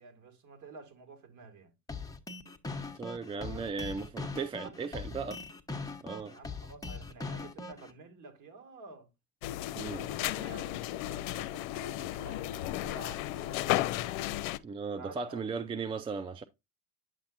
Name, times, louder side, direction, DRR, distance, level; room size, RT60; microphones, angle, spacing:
voice 1, 0.0-1.7 3.3-3.6 4.6-5.2 6.3-9.1 10.1-13.8 15.0-15.8, right 3 dB, 50° right, 2.2 m, -50 dB
sound 1, 1.9-7.9, left 3 dB, 10° left, 1.0 m, -40 dB
voice 2, 2.9-5.4 6.0-6.3 9.7-10.1 14.6-16.4, right 5 dB, 15° right, 0.3 m, -37 dB
sound 2, 9.4-14.6, left 15 dB, 75° left, 0.6 m, -34 dB
9.1 x 5.8 x 2.5 m
hypercardioid pair, 90°, 40 cm